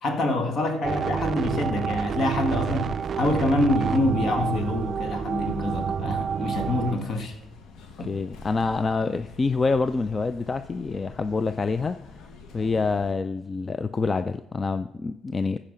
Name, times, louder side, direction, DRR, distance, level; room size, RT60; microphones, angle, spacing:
voice 1, 0.0-7.4 8.0-8.1, left 1 dB, 60° left, 1.8 m, -26 dB
sound 1, 0.8-7.0, right 7 dB, 55° right, 0.3 m, -29 dB
sound 2, 2.1-13.1, left 4 dB, 85° left, 1.3 m, -47 dB
voice 2, 8.0-12.0 12.5-15.6, left 4 dB, 30° left, 0.4 m, -26 dB
14.5 x 5.0 x 5.1 m
cardioid pair, 90°, 0 cm